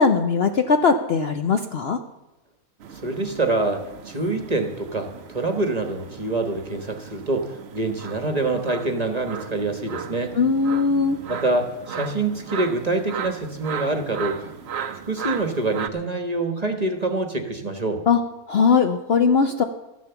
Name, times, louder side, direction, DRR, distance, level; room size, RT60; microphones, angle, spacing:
voice 1, 0.0-2.0 10.3-11.2 18.1-18.2 18.5-19.6, left 5 dB, 55° left, 6 dB, 0.8 m, -19 dB
sound 1, 2.8-15.9, right 7 dB, 55° right, 0.9 m, -36 dB
voice 2, 3.0-10.3 11.3-14.5 15.1-18.0, right 2 dB, 30° right, 5 dB, 1.2 m, -26 dB
13.5 x 10.5 x 7.0 m, 1.0 s
omnidirectional pair, 1.6 m